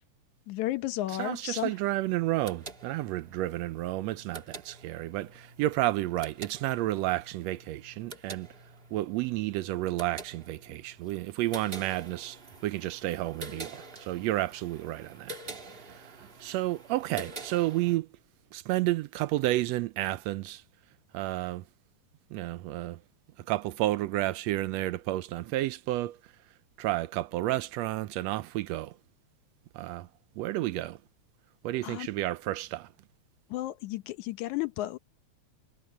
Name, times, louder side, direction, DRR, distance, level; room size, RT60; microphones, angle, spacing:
voice 1, 0.5-1.7 31.8-32.1 33.5-35.0, left 15 dB, 80° left, 2.2 m, -33 dB
voice 2, 1.1-8.5 8.9-18.1 18.5-20.6 21.1-21.7 22.3-23.0 23.4-29.0 29.7-30.1 30.3-31.0 31.6-32.9, right 16 dB, 80° right, 1.6 m, -31 dB
sound 1, 2.2-18.0, right 2 dB, 30° right, 1.1 m, -47 dB
omnidirectional pair, 3.5 m